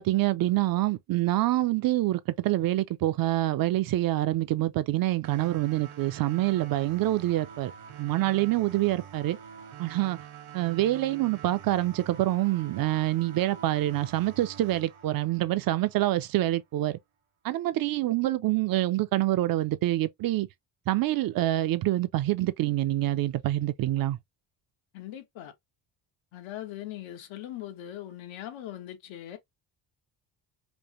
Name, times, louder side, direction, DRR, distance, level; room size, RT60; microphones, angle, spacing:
voice 1, 0.0-7.7 8.0-9.4 9.8-10.2 10.5-17.0 17.4-20.5 20.9-24.2, right 15 dB, 50° right, 0.5 m, -26 dB
sound 1, 5.2-16.2, right 8 dB, 90° right, 1.7 m, -46 dB
voice 2, 24.9-25.5 26.3-29.4, left 12 dB, 85° left, 1.3 m, -40 dB
5.1 x 2.1 x 2.9 m
cardioid pair, 150°, 46 cm